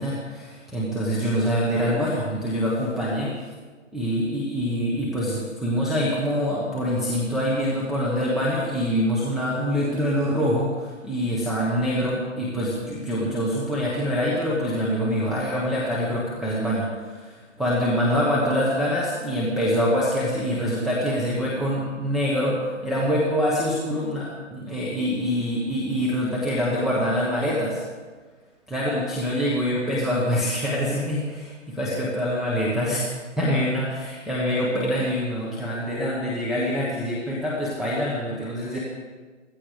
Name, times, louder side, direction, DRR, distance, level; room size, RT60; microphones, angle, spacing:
voice 1, 0.0-3.3 3.9-27.8 28.7-33.1 33.4-38.8, equal, ahead, -7 dB, 1.2 m, -25 dB
16.0 x 15.5 x 5.1 m, 1.4 s
hypercardioid pair, 160°, 38 cm